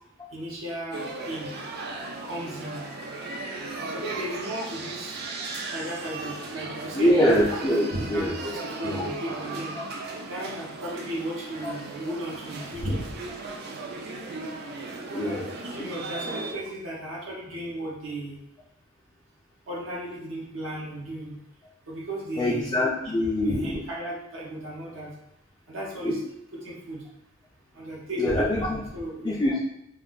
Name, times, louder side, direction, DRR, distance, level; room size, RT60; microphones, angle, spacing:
voice 1, 0.3-1.5 2.2-2.9 3.9-5.2 5.7-7.3 7.9-9.8 10.3-13.0 15.1-18.4 19.7-21.4 21.9-22.7 23.0-25.1 25.7-26.2 26.5-27.0 27.7-29.4, right 1 dB, 70° right, -4 dB, 0.7 m, -35 dB
sound 1, 0.9-16.5, right 3 dB, 50° right, 0.4 m, -36 dB
voice 2, 6.9-8.4 8.8-9.1 15.1-15.5 22.4-23.8 26.0-26.2 28.2-28.8 29.2-29.6, left 1 dB, 20° left, -4 dB, 0.3 m, -24 dB
2.5 x 2.3 x 3.6 m, 0.82 s
head